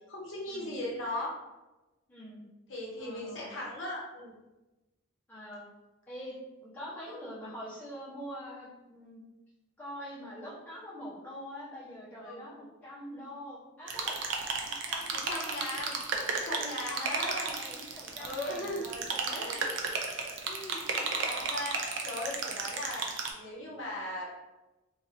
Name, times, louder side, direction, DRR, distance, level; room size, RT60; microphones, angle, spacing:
voice 1, 0.0-1.3 2.7-4.3 7.0-7.2 12.2-12.4 15.1-15.9 16.3-17.6 18.2-18.9 19.3-19.7 20.5-23.0 23.3-24.3, left 1 dB, 65° left, -4 dB, 0.8 m, -38 dB
voice 2, 2.1-2.4 3.0-3.5 5.3-5.7 6.1-9.2 9.8-14.2 14.6-15.7 16.9-19.7 20.1-20.2 20.8-21.2 22.2-22.4, equal, 10° left, -9 dB, 1.1 m, -45 dB
sound 1, 13.9-23.3, right 4 dB, 60° right, 0.5 m, -34 dB
4.0 x 2.6 x 2.7 m, 1.1 s
head